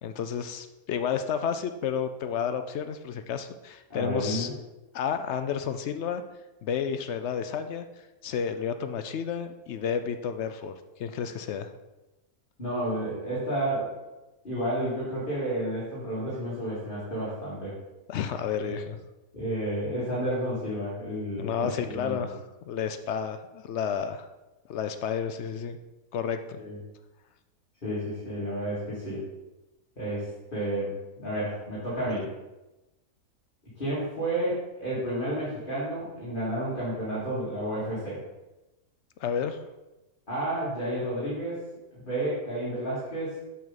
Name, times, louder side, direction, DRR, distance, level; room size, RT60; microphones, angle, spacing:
voice 1, 0.0-4.5 4.9-6.2 6.6-7.9 8.2-10.7 11.0-11.7 18.1-19.0 21.4-24.3 24.7-25.8 26.1-26.6 39.2-39.6, left 7 dB, 65° left, 9 dB, 0.7 m, -31 dB
voice 2, 3.9-4.5 12.6-13.9 14.4-17.7 18.6-18.7 19.3-22.3 26.6-26.8 27.8-29.2 30.0-32.3 33.8-38.2 40.3-41.6 41.9-43.4, right 1 dB, 35° left, -9 dB, 2.5 m, -31 dB
7.6 x 7.1 x 4.1 m, 1.0 s
omnidirectional pair, 1.6 m